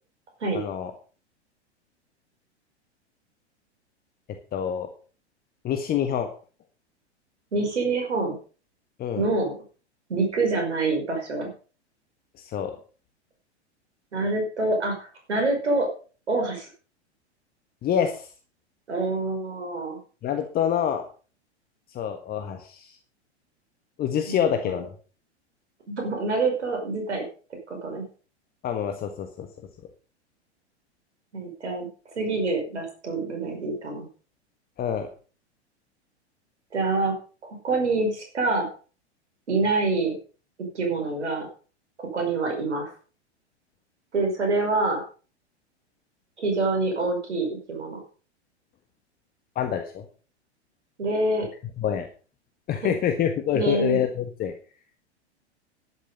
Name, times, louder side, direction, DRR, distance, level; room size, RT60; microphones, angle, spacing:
voice 1, 0.5-0.9 4.5-4.9 5.6-6.3 9.0-9.3 12.4-12.7 17.8-18.3 20.2-21.0 21.9-23.0 24.0-24.9 28.6-29.5 34.8-35.1 49.5-50.0 51.8-52.1 52.7-54.5, left 9 dB, 25° left, 6 dB, 1.5 m, -26 dB
voice 2, 7.5-8.4 9.2-9.5 10.1-11.5 14.1-15.9 16.3-16.7 18.9-20.0 24.3-24.8 25.9-27.3 27.7-28.0 31.3-31.9 32.2-34.1 36.7-37.2 37.4-38.7 39.5-40.1 40.7-41.5 42.0-42.9 44.1-45.0 46.4-48.0 51.0-51.5 52.8-52.9 53.5-54.0, right 3 dB, 75° right, 3 dB, 5.5 m, -26 dB
11.0 x 11.0 x 5.5 m, 0.39 s
figure-of-eight pair, 100°, 34 cm